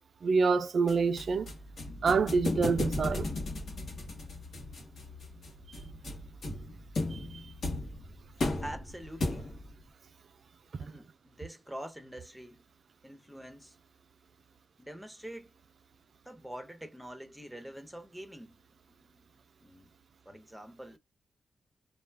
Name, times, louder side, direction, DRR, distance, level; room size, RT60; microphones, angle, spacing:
voice 1, 0.2-1.5 2.0-3.3 7.1-7.4 10.7-10.8, right 4 dB, 60° right, 0.4 m, -27 dB
sound 1, 0.9-9.8, left 2 dB, 65° left, 1.0 m, -36 dB
voice 2, 8.6-9.5 10.8-12.6 13.0-13.8 14.8-15.5 16.2-19.9 20.3-21.0, equal, ahead, 0.7 m, -46 dB
2.3 x 2.2 x 3.3 m
cardioid pair, 95°, 0 cm